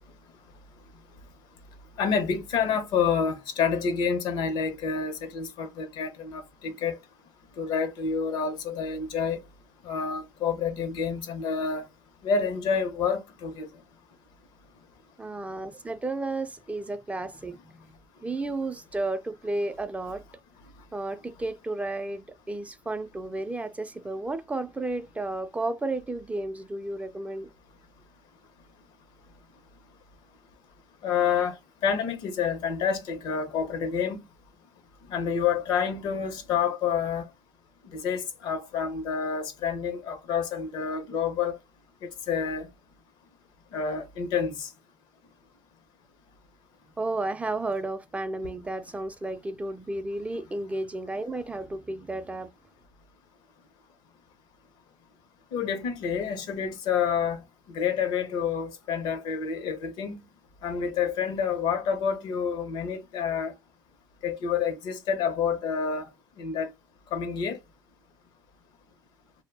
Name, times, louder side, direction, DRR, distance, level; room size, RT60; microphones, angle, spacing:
voice 1, 2.0-7.0 7.6-9.4 9.8-11.9 12.2-13.7 31.0-31.6 31.8-34.2 35.1-37.3 37.9-41.6 42.0-42.7 43.7-44.7 55.5-60.2 60.6-63.5 64.2-66.1 66.4-66.7 67.1-67.6, left 6 dB, 80° left, 0.6 m, -28 dB
voice 2, 15.2-17.7 18.2-20.2 20.9-27.5 47.0-52.5, right 2 dB, 15° right, 0.3 m, -32 dB
2.2 x 2.0 x 3.3 m
supercardioid pair, 75°, 8 cm